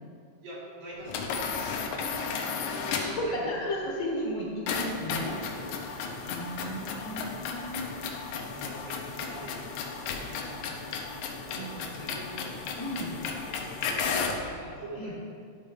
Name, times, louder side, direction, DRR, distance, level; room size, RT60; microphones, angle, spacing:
voice 1, 0.4-3.5 5.5-6.0 6.8-7.2 8.4-12.7 13.4-13.6 13.9-15.4, right 1 dB, 80° right, -6 dB, 3.7 m, -45 dB
sound 1, 1.1-3.3 4.7-14.5, left 5 dB, 75° left, 2.0 m, -34 dB
voice 2, 3.0-5.6 6.2-8.3 11.5-11.8 12.8-13.1 15.0-15.1, equal, 45° left, -5 dB, 1.1 m, -34 dB
11.0 x 4.1 x 4.9 m, 2.1 s
omnidirectional pair, 3.8 m